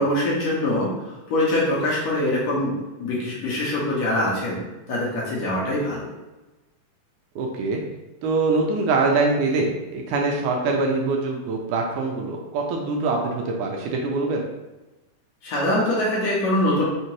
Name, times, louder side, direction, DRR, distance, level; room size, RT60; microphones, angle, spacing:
voice 1, 0.0-2.7 3.0-4.6 4.9-6.1 15.4-16.8, left 1 dB, 65° left, -6 dB, 2.0 m, -23 dB
voice 2, 7.4-7.8 8.2-14.5, right 3 dB, 80° right, 1 dB, 2.0 m, -24 dB
5.6 x 2.9 x 3.0 m, 1.1 s
omnidirectional pair, 3.8 m